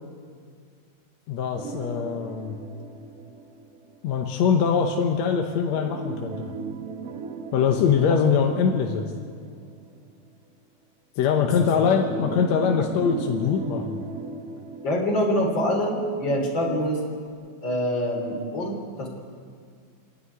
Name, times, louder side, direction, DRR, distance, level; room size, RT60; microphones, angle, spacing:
voice 1, 1.3-2.6 4.0-6.5 7.5-9.1 11.2-14.0, left 6 dB, 65° left, 3 dB, 2.0 m, -23 dB
sound 1, 1.5-4.2 5.7-10.1 11.3-16.2 16.6-16.7 17.3-17.4, right 4 dB, 55° right, 1.0 m, -37 dB
voice 2, 11.4-12.3 12.8-12.9 14.8-17.0 17.6-19.1, equal, 35° left, -1 dB, 4.1 m, -26 dB
27.0 x 11.5 x 9.6 m, 2.1 s
omnidirectional pair, 3.8 m